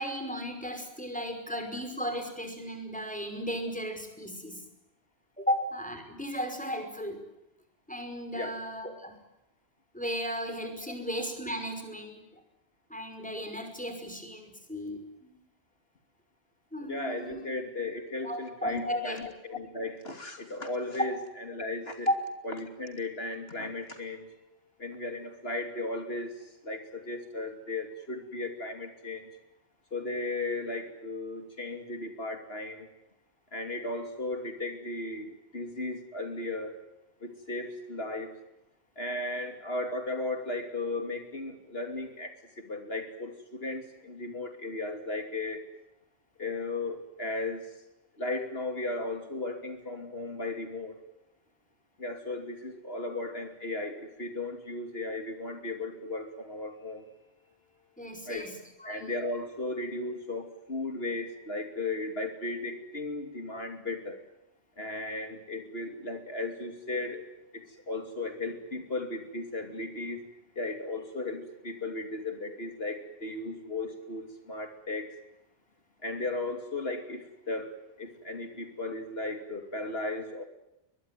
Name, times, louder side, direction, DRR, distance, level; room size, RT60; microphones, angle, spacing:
voice 1, 0.0-4.6 5.4-7.2 7.9-9.1 9.9-12.4 12.9-15.3 16.7-17.4 18.2-19.2 22.1-22.2 58.0-59.1, equal, 5° left, 5 dB, 5.4 m, -35 dB
voice 2, 16.8-21.2 21.5-22.1 22.4-24.4 24.8-29.3 29.9-32.9 33.5-36.8 37.2-38.3 39.0-45.7 46.4-47.7 48.2-51.0 52.0-57.1 58.2-58.5 58.8-64.2 64.8-67.2 67.5-75.1 76.0-80.4, left 2 dB, 55° left, 6 dB, 3.0 m, -36 dB
23.5 x 21.5 x 9.2 m, 0.87 s
omnidirectional pair, 1.2 m